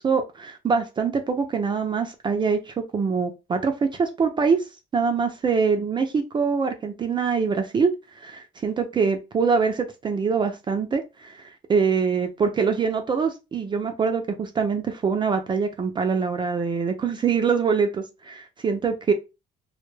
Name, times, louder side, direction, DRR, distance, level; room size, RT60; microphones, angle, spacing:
voice 1, 0.0-4.6 4.9-7.9 8.2-19.1, right 5 dB, 30° right, 0.4 m, -24 dB
2.2 x 2.1 x 3.1 m
cardioid pair, 110°, 17 cm